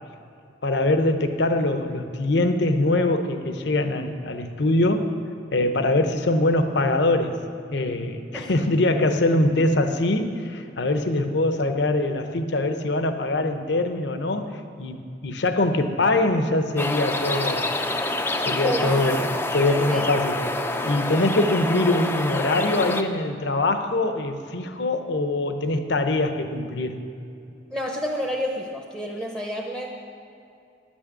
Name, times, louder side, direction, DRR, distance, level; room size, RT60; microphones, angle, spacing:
voice 1, 0.6-5.1 5.5-7.4 7.7-17.7 18.5-20.4 20.8-27.0, left 2 dB, 65° left, 7 dB, 0.8 m, -23 dB
sound 1, 16.8-23.0, left 2 dB, 10° left, 0.5 m, -27 dB
voice 2, 18.6-19.2 19.6-20.1 27.7-29.9, equal, 10° right, 0 dB, 0.8 m, -29 dB
11.0 x 6.3 x 8.2 m, 2.5 s
head